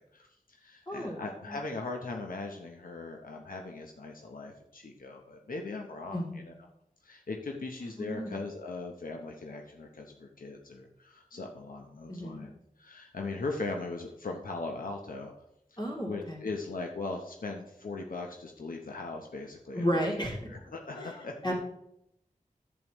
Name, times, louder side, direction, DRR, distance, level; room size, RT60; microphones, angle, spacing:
voice 1, 0.1-6.2 6.5-6.6 7.0-12.5 12.8-15.3 16.1-19.8 20.2-21.6, left 3 dB, 80° left, 2 dB, 0.9 m, -39 dB
voice 2, 0.9-1.2 1.5-1.6 6.1-6.5 7.8-8.4 12.1-12.5 15.8-16.4 19.7-20.4 21.0-21.1 21.4-21.6, equal, 35° left, -1 dB, 3.0 m, -33 dB
11.0 x 8.3 x 3.1 m, 0.78 s
wide cardioid pair, 75°, 14 cm